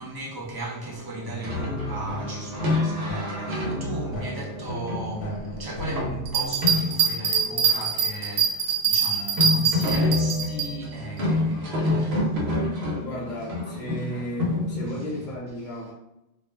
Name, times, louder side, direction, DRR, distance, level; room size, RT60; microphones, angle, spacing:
voice 1, 0.0-12.3 14.9-15.0, right 1 dB, 35° right, 0.4 m, -36 dB
sound 1, 1.2-7.2, equal, 85° left, 1.0 m, -34 dB
sound 2, 1.4-8.1 8.4-8.5 8.7-8.8 9.1-15.4, left 2 dB, 65° right, 0.9 m, -28 dB
sound 3, 6.3-10.7, right 7 dB, 90° right, 0.9 m, -23 dB
voice 2, 13.0-15.9, equal, 50° left, 0.8 m, -34 dB
2.4 x 2.0 x 3.2 m
omnidirectional pair, 1.2 m